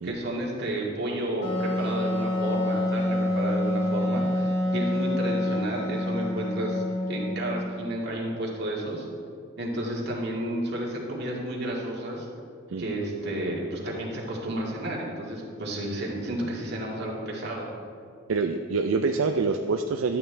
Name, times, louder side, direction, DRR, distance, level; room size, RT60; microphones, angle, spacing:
voice 1, 0.0-9.1 9.6-12.3 12.8-17.7, right 1 dB, 55° right, -3 dB, 2.0 m, -31 dB
Wind instrument woodwind instrument, 1.4-7.9, left 1 dB, 55° left, 1.7 m, -27 dB
voice 2, 18.3-20.2, right 4 dB, 80° right, 5 dB, 0.4 m, -26 dB
12.0 x 8.8 x 3.3 m, 2.4 s
head